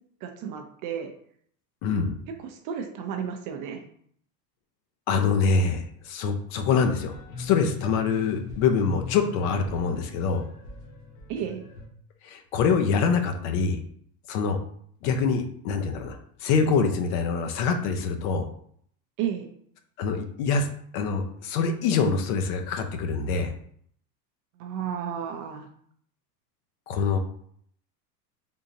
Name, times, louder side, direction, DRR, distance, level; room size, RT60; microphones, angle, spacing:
voice 1, 0.2-1.1 2.3-3.8 11.3-11.6 19.2-19.5 24.6-25.7, right 8 dB, 40° right, 5 dB, 0.5 m, -32 dB
voice 2, 1.8-2.1 5.1-10.4 12.2-13.8 14.3-14.6 15.0-18.4 20.0-20.7 20.9-23.5 26.9-27.2, left 5 dB, 55° left, 5 dB, 0.7 m, -25 dB
sound 1, 6.8-11.9, left 5 dB, 80° left, 1.0 m, -40 dB
3.7 x 2.7 x 2.6 m, 0.63 s
supercardioid pair, 110°, 50 cm